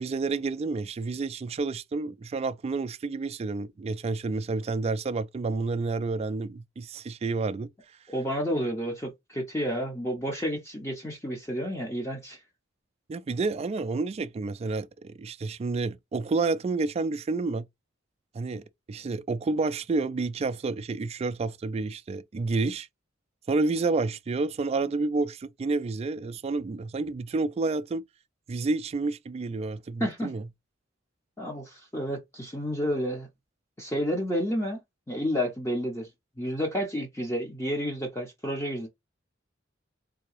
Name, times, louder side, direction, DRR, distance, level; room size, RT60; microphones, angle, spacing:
voice 1, 0.0-7.7 13.1-17.6 18.3-22.9 23.5-28.0 28.5-30.5, right 3 dB, 30° right, 0.3 m, -29 dB
voice 2, 8.1-12.4 30.0-30.3 31.4-33.3 33.8-34.8 35.1-36.1 36.4-38.9, equal, 15° left, 0.7 m, -30 dB
3.6 x 2.8 x 3.0 m
head